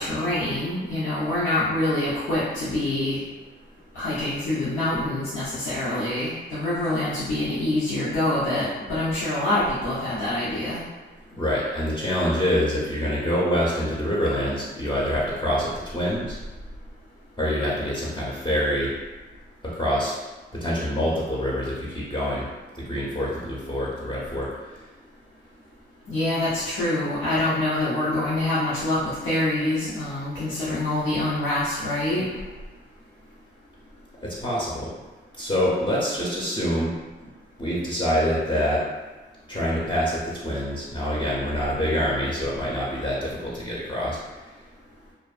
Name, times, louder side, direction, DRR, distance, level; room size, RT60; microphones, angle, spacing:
voice 1, 0.0-3.2 3.9-10.8 26.1-32.2, left 1 dB, 90° left, -12 dB, 0.7 m, -25 dB
voice 2, 11.3-16.4 17.4-18.9 19.6-20.2 20.5-22.5 22.7-24.8 34.2-34.9 35.4-36.9 37.2-37.3 37.6-38.8 39.5-44.2, equal, 25° left, -7 dB, 0.7 m, -26 dB
2.4 x 2.3 x 2.4 m, 1.2 s
cardioid pair, 60°, 20 cm